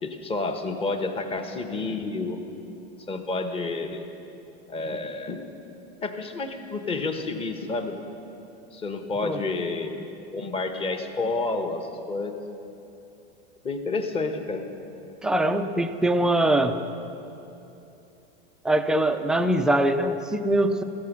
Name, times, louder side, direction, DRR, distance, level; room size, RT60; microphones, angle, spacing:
voice 1, 0.0-2.4 3.1-4.0 4.7-5.4 6.0-8.0 8.7-10.0 10.3-12.4 13.6-14.7, left 3 dB, 20° left, 6 dB, 1.1 m, -29 dB
voice 2, 15.2-16.8 18.6-20.8, right 1 dB, ahead, 6 dB, 0.4 m, -22 dB
14.0 x 14.0 x 6.2 m, 2.9 s
supercardioid pair, 135°, 32 cm